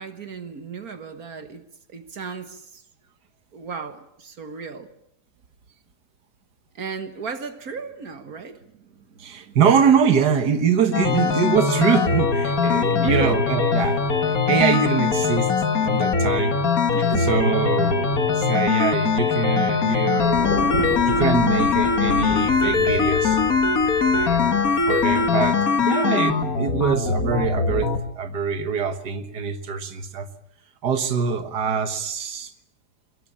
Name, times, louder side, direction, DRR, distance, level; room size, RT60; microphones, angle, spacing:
voice 1, 0.0-1.6 1.9-2.8 3.5-4.9 6.8-9.6 12.9-13.4 16.9-17.8, right 5 dB, 60° right, 1.9 m, -35 dB
voice 2, 9.2-14.0 14.3-15.5 15.8-16.6 17.2-20.5 21.0-23.4 24.1-30.3 30.8-32.5, right 6 dB, 80° right, 2.1 m, -24 dB
sound 1, 10.9-28.0, left 5 dB, 60° left, 2.2 m, -21 dB
Thunder, 20.2-25.5, left 3 dB, 90° left, 4.3 m, -31 dB
22.5 x 22.0 x 8.7 m
omnidirectional pair, 1.7 m